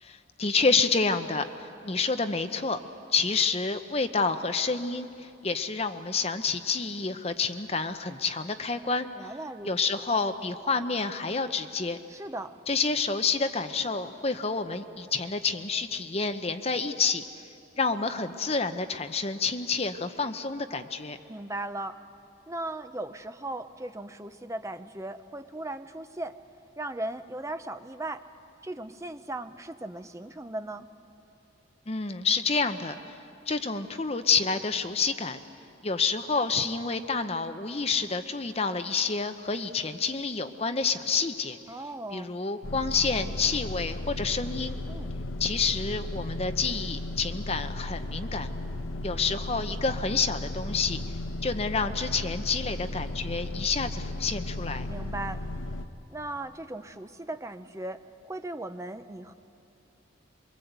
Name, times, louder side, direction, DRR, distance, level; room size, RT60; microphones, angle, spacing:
voice 1, 0.0-2.8 3.1-9.3 9.6-12.0 12.7-17.2 17.8-21.2 31.9-33.2 33.5-35.4 35.8-41.6 42.1-44.8 45.4-48.5 49.0-51.0 51.4-54.9, left 4 dB, 30° left, 9 dB, 0.8 m, -28 dB
voice 2, 9.2-10.0 12.1-12.5 21.3-22.0 22.5-26.4 26.8-28.3 28.6-30.9 41.7-42.4 44.9-45.1 54.9-55.4 56.1-59.3, right 2 dB, 15° right, 9 dB, 0.6 m, -37 dB
sound 1, 42.6-55.9, left 1 dB, 90° left, 1.0 m, -35 dB
24.5 x 22.5 x 8.1 m, 2.8 s
head